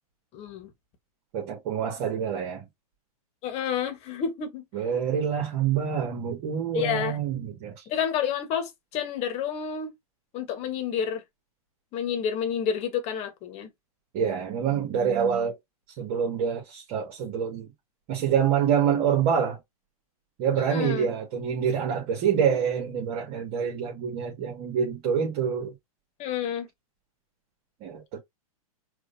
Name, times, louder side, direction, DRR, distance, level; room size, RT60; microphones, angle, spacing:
voice 1, 0.3-0.7 3.4-4.6 6.7-7.2 7.9-9.9 10.3-11.2 11.9-13.7 20.6-21.1 26.2-26.7, left 8 dB, 35° left, 1.4 m, -29 dB
voice 2, 1.3-2.7 4.7-7.7 14.1-15.6 16.0-17.7 18.1-19.6 20.4-25.7 27.8-28.2, right 7 dB, 45° right, 2.1 m, -26 dB
5.0 x 2.8 x 2.7 m
hypercardioid pair, 125°, 19 cm